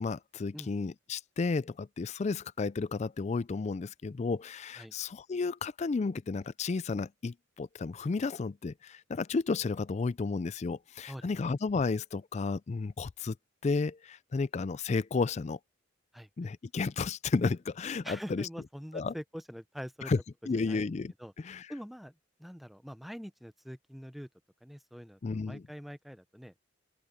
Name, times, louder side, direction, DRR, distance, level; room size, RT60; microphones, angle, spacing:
voice 1, 0.0-13.3 13.6-15.6 16.4-18.5 18.9-19.1 20.1-20.2 20.5-21.1 21.4-21.7 25.2-25.6, left 4 dB, 35° left, 0.3 m, -32 dB
voice 2, 16.1-16.5 18.0-20.1 20.5-20.8 21.2-21.3 21.7-22.1 22.4-24.3 24.6-26.6, equal, ahead, 0.6 m, -44 dB
open air
head